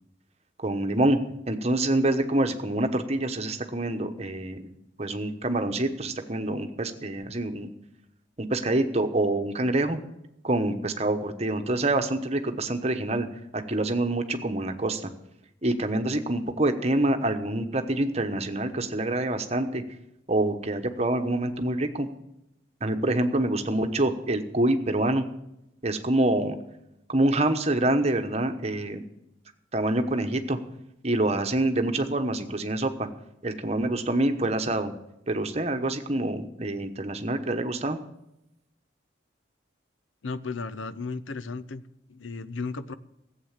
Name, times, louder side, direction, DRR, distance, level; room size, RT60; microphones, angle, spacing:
voice 1, 0.6-1.2 1.5-4.6 5.0-7.7 8.4-10.0 10.4-13.3 13.5-15.1 15.6-19.8 20.3-22.1 22.8-25.3 25.8-26.6 27.1-29.0 29.7-30.6 31.0-33.1 33.4-34.9 35.3-38.0, right 1 dB, 35° right, 7 dB, 1.1 m, -26 dB
voice 2, 40.2-41.8 42.1-42.9, left 4 dB, 90° left, 13 dB, 0.7 m, -34 dB
15.0 x 8.2 x 7.4 m, 0.86 s
head